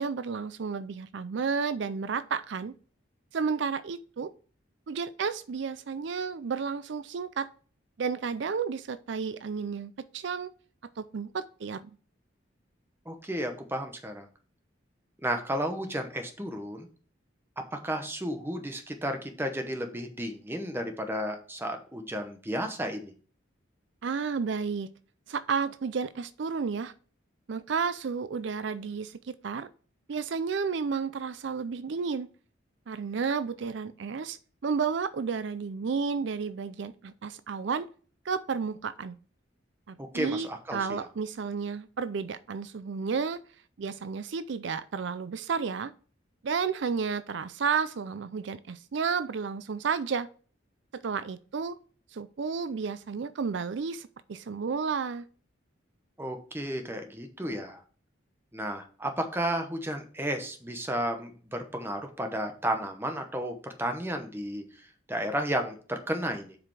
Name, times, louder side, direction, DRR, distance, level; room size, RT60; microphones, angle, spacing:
voice 1, 0.0-2.7 3.3-4.3 4.9-7.5 8.0-10.5 11.0-11.9 24.0-24.9 25.3-26.9 27.5-29.7 30.1-32.3 32.9-37.9 38.2-39.2 39.9-43.4 43.8-45.9 46.4-50.3 50.9-51.8 52.1-55.3, right 5 dB, 65° right, 0.4 m, -32 dB
voice 2, 13.1-14.3 15.2-16.9 17.7-23.1 40.0-41.1 56.2-57.8 58.5-64.8 65.1-66.5, right 1 dB, 10° right, 0.9 m, -33 dB
7.5 x 4.9 x 4.8 m
head